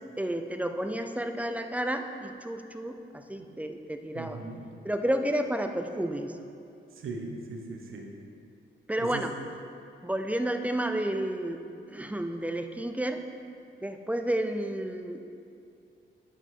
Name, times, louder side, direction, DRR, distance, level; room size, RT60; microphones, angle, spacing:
voice 1, 0.2-4.4 4.8-6.4 8.9-9.3 10.0-11.6 11.9-13.2 13.8-15.2, right 1 dB, 5° right, 6 dB, 0.4 m, -31 dB
voice 2, 4.1-4.7 6.9-8.1 9.0-9.3, right 3 dB, 75° right, 1 dB, 1.0 m, -39 dB
11.0 x 4.7 x 3.7 m, 2.6 s
wide cardioid pair, 115°, 21 cm